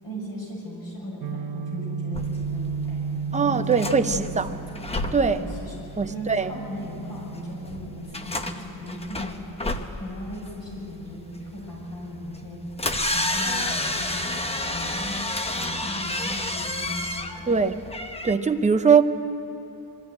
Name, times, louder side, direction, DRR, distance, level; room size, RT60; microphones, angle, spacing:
voice 1, 0.0-4.8 5.2-5.8 6.1-9.5 10.0-12.6 13.1-15.2 15.5-17.8, left 1 dB, 60° left, -3 dB, 7.0 m, -37 dB
Guitar, 1.2-9.1, right 6 dB, 70° right, 0.6 m, -34 dB
sound 1, 2.1-18.3, left 1 dB, 15° left, 0.8 m, -31 dB
voice 2, 3.3-4.5 5.1-5.4 6.0-6.5 17.5-17.8 18.2-19.0, right 5 dB, 20° right, 8 dB, 0.6 m, -21 dB
22.5 x 14.0 x 9.8 m, 2.9 s
wide cardioid pair, 175°, 39 cm